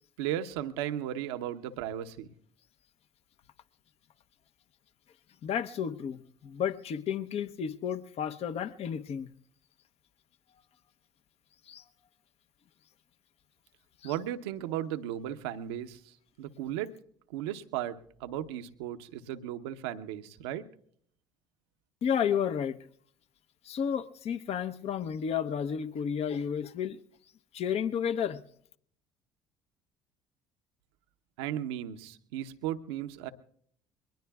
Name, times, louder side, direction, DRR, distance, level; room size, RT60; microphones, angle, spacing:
voice 1, 0.2-2.3 14.0-16.9 17.3-20.6 31.4-33.3, right 11 dB, 75° right, 0.8 m, -36 dB
voice 2, 5.4-9.3 11.7-11.8 14.0-14.1 22.0-22.8 23.6-27.0 27.5-28.4, left 8 dB, 50° left, 0.8 m, -32 dB
23.0 x 19.5 x 2.4 m
hypercardioid pair, 60°, 13 cm